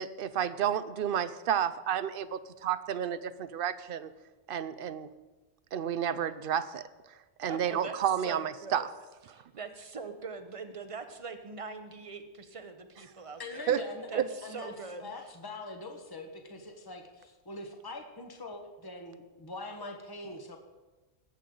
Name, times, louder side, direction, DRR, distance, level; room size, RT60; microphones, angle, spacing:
voice 1, 0.0-4.1 4.5-5.1 5.7-6.9 7.4-8.9 13.7-13.8 14.1-14.2, right 9 dB, 60° right, 14 dB, 0.7 m, -31 dB
voice 2, 7.5-8.0 8.2-8.9 9.3-15.3, right 4 dB, 30° right, 8 dB, 0.9 m, -43 dB
voice 3, 13.4-14.7 15.0-20.6, left 2 dB, 20° left, 3 dB, 1.2 m, -43 dB
20.0 x 8.4 x 3.8 m, 1.2 s
omnidirectional pair, 1.2 m